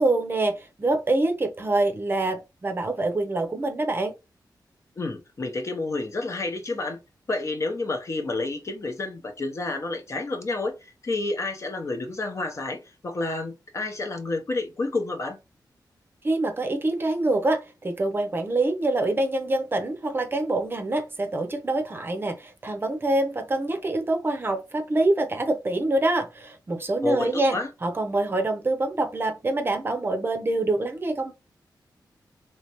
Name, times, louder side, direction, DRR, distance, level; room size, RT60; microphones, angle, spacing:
voice 1, 0.0-4.1 16.2-27.6 27.8-31.3, right 2 dB, 30° right, 0.6 m, -25 dB
voice 2, 5.0-7.0 7.3-15.4 27.0-27.7, left 2 dB, 40° left, 0.7 m, -30 dB
3.2 x 3.2 x 2.9 m
wide cardioid pair, 155°, 7 cm